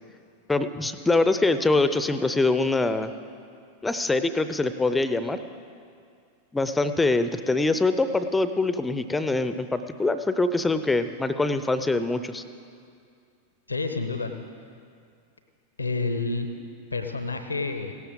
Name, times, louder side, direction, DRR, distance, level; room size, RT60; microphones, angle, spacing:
voice 1, 0.5-3.1 3.8-5.4 6.5-12.4, left 3 dB, 10° left, 11 dB, 0.6 m, -24 dB
voice 2, 13.7-14.3 15.8-16.5 16.9-17.9, left 3 dB, 80° left, 8 dB, 0.8 m, -29 dB
17.0 x 12.5 x 3.8 m, 2.3 s
figure-of-eight pair, 90°, 0 cm